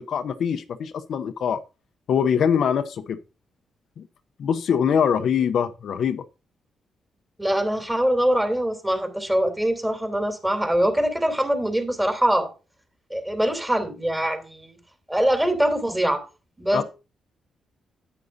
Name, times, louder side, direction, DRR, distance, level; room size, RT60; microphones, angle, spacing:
voice 1, 0.0-1.6 2.1-3.2 4.0-4.1 4.4-6.2 16.7-16.8, left 7 dB, 70° left, 0.6 m, -23 dB
voice 2, 7.4-12.5 13.1-14.8 15.1-16.2 16.6-16.8, right 1 dB, 10° right, 2.9 m, -23 dB
9.8 x 9.2 x 2.7 m
cardioid pair, 65°, 0 cm